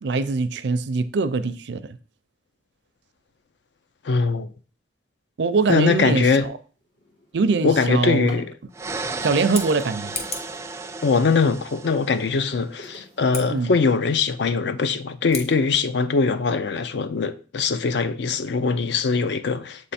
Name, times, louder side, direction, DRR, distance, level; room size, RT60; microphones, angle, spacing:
voice 1, 0.0-2.0 5.4-6.3 7.3-8.3 9.2-10.1 13.5-13.7, right 4 dB, 75° right, 0.5 m, -22 dB
voice 2, 4.0-4.5 5.7-6.5 7.6-8.5 11.0-19.9, left 4 dB, 70° left, 0.5 m, -22 dB
Drawer open or close, 5.9-6.1 6.6-8.6 9.6-11.3 11.8-14.2 14.9-15.0 15.5-15.6 15.9-16.3, equal, 85° left, 2.4 m, -49 dB
sound 1, 8.7-12.6, right 3 dB, 15° right, 0.3 m, -34 dB
Scissors, 9.3-10.6 13.2-13.5 15.2-15.5, left 3 dB, 35° left, 1.0 m, -34 dB
7.5 x 3.4 x 4.2 m
head